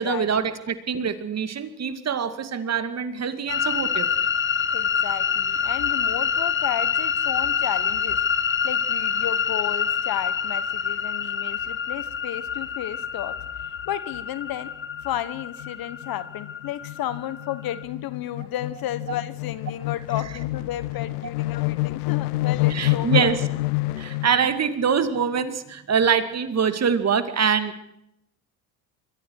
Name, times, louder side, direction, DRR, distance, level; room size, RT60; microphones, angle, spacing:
voice 1, 0.0-4.1 22.7-23.4 24.0-27.8, right 6 dB, 35° right, 10 dB, 2.3 m, -24 dB
sound 1, 3.5-17.8, left 7 dB, 25° left, 1.3 m, -26 dB
voice 2, 4.7-8.2 8.6-13.4 13.9-14.7 15.0-23.4, left 12 dB, 50° left, 15 dB, 1.5 m, -33 dB
sound 2, 13.9-14.2 14.5-14.7 14.9-24.6, left 19 dB, 85° left, 0.7 m, -28 dB
27.0 x 23.0 x 4.8 m, 0.78 s
supercardioid pair, 85°, 45 cm